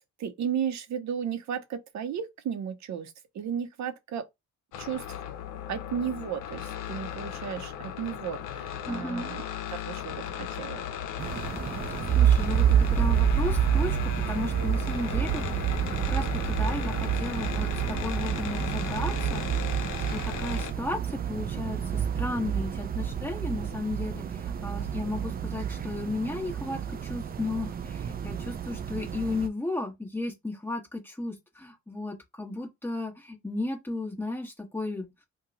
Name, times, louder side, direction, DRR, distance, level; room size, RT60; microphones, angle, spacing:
voice 1, 0.2-4.2 4.8-5.0 5.7-9.5 9.7-10.8, right 8 dB, 65° right, 0.7 m, -34 dB
sound 1, 4.7-20.7, left 9 dB, 85° left, 0.6 m, -37 dB
voice 2, 8.9-9.3 11.8-19.5 19.7-35.1, left 2 dB, 5° left, 1.3 m, -34 dB
sound 2, 11.2-29.5, right 8 dB, 30° right, 0.4 m, -28 dB
2.8 x 2.3 x 3.8 m
cardioid pair, 90°, 30 cm